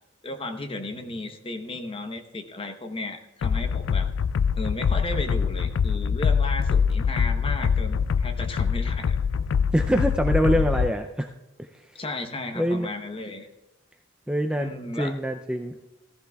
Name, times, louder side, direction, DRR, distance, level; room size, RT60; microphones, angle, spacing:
voice 1, 0.2-4.1 4.6-9.2 10.7-10.8 11.9-13.5 14.6-15.1, left 2 dB, 25° left, 5 dB, 0.9 m, -34 dB
sound 1, 3.4-10.9, left 6 dB, 65° left, 0.3 m, -24 dB
voice 2, 9.7-11.3 11.6-11.7 12.5-12.9 14.3-15.8, equal, 5° right, 5 dB, 0.4 m, -25 dB
15.5 x 14.5 x 2.3 m, 0.92 s
head